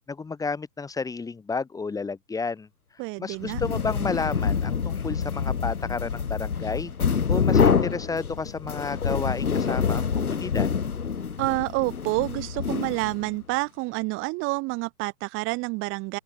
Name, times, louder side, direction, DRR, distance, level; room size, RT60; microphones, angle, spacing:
voice 1, 0.1-2.7 3.2-10.7, left 4 dB, 5° left, 3.5 m, -32 dB
voice 2, 3.0-3.6 11.4-16.2, right 25 dB, 25° right, 3.3 m, -28 dB
sound 1, 3.4-13.4, left 6 dB, 70° left, 4.4 m, -26 dB
open air
figure-of-eight pair, 125°, 46 cm